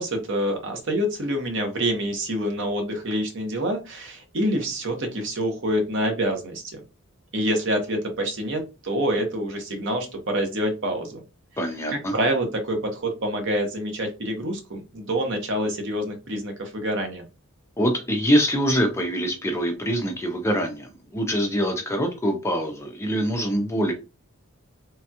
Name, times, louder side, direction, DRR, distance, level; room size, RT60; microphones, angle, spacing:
voice 1, 0.0-6.8 7.3-11.2 11.9-17.2, equal, 55° right, 4 dB, 0.8 m, -26 dB
voice 2, 11.6-12.1 17.8-23.9, equal, 10° left, 4 dB, 0.4 m, -24 dB
3.3 x 2.2 x 2.7 m, 0.29 s
head